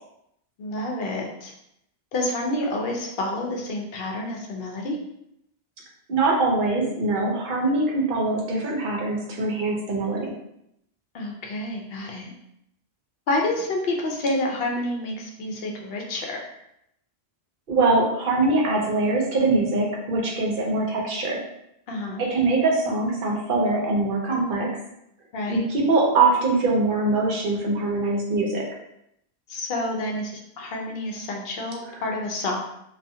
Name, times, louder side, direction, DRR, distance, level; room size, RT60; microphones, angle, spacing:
voice 1, 0.6-1.5 2.1-5.0 11.1-12.3 13.3-16.4 21.9-22.2 25.3-25.7 29.5-32.6, left 2 dB, 70° left, 0 dB, 0.8 m, -28 dB
voice 2, 6.1-10.3 17.7-21.4 22.2-24.7 25.5-28.6, right 3 dB, 60° right, -1 dB, 0.8 m, -23 dB
2.4 x 2.4 x 2.6 m, 0.79 s
omnidirectional pair, 1.1 m